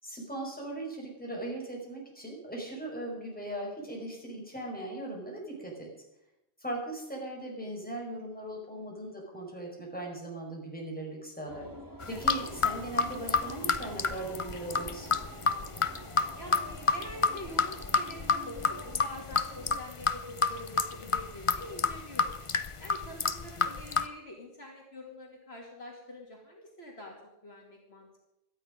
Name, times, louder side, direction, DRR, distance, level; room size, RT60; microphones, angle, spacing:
voice 1, 0.0-5.9 6.6-11.7 12.1-15.1, right 1 dB, 5° left, -1 dB, 4.9 m, -39 dB
sound 1, 11.5-19.8, equal, 15° right, 1.7 m, -48 dB
sound 2, 12.0-24.1, left 5 dB, 35° left, 0.6 m, -29 dB
voice 2, 16.3-22.4 22.8-27.1 27.4-28.2, left 1 dB, 55° left, -1 dB, 2.8 m, -45 dB
17.5 x 13.0 x 5.2 m, 0.87 s
omnidirectional pair, 1.3 m